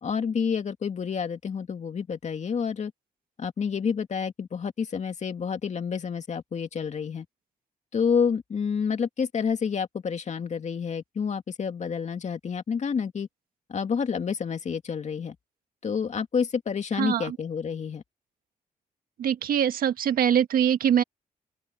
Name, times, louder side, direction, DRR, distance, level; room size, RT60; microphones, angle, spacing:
voice 1, 0.0-2.9 3.4-7.3 7.9-13.3 13.7-15.4 15.8-18.0, left 6 dB, 55° left, 2.3 m, -29 dB
voice 2, 17.0-17.4 19.2-21.0, right 9 dB, 90° right, 1.8 m, -23 dB
open air
cardioid pair, 85°, 14 cm